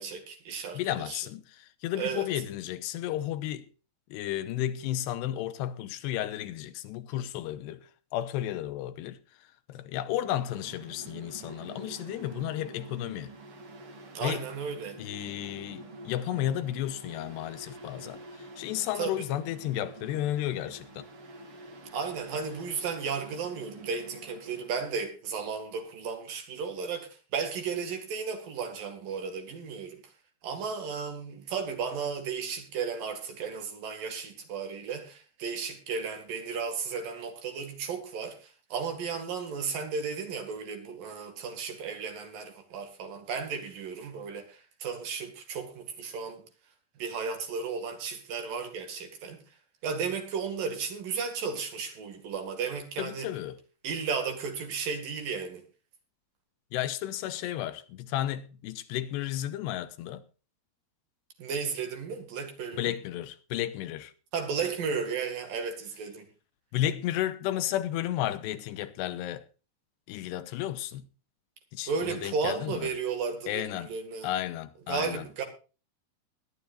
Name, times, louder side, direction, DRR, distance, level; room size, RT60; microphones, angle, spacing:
voice 1, 0.0-1.2 2.0-2.3 14.2-15.0 19.0-19.1 21.9-30.1 30.4-46.4 47.0-49.4 49.8-53.3 53.8-55.6 61.4-62.9 64.3-66.3 71.9-74.3 74.9-75.4, right 5 dB, 60° right, 3.6 m, -34 dB
voice 2, 0.7-3.7 4.1-9.2 9.7-13.3 14.2-14.4 15.0-21.1 53.0-53.6 56.7-60.2 62.7-64.1 66.7-69.5 70.1-71.0 71.7-72.9 73.5-73.9 74.2-75.3, left 12 dB, 85° left, 3.0 m, -33 dB
Mechanical fan, 10.1-25.0, right 2 dB, 35° right, 3.1 m, -47 dB
21.0 x 11.5 x 2.6 m
omnidirectional pair, 4.8 m